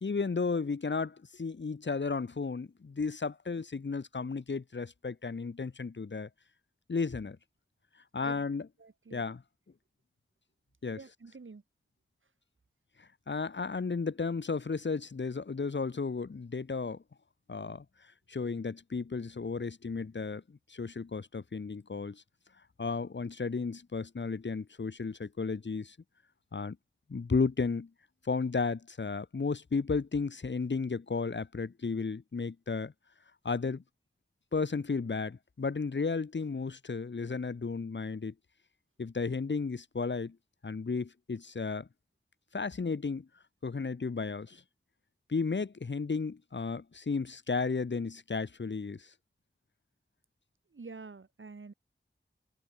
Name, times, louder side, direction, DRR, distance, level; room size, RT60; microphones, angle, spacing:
voice 1, 0.0-6.3 6.9-7.4 8.1-8.7 9.1-9.4 10.8-11.0 13.0-17.0 17.5-17.8 18.3-22.2 22.8-26.0 26.5-26.8 27.1-27.9 28.2-32.9 33.4-33.8 34.5-38.3 39.0-40.4 40.6-41.9 42.5-43.3 43.6-44.6 45.3-49.1, left 4 dB, 65° left, 1.2 m, -33 dB
voice 2, 8.8-9.3 10.9-11.6 50.7-51.7, right 4 dB, 75° right, 2.7 m, -48 dB
wide cardioid pair, 65°, 21 cm